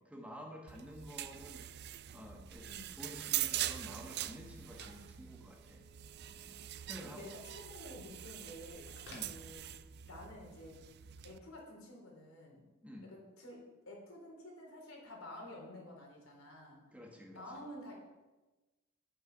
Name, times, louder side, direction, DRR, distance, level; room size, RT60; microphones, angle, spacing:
voice 1, 0.0-5.9 6.3-7.4 9.1-9.3 12.8-13.1 16.9-17.6, equal, 5° right, 0 dB, 1.3 m, -51 dB
sound 1, 0.7-11.4, right 13 dB, 50° right, 0.4 m, -43 dB
Telephone, 2.8-10.2, equal, 60° left, 3.3 m, -61 dB
voice 2, 7.0-9.6 10.0-10.8 11.2-12.6 13.0-16.8 17.3-17.9, left 1 dB, 75° left, -1 dB, 3.7 m, -51 dB
9.0 x 8.7 x 6.1 m, 1.2 s
head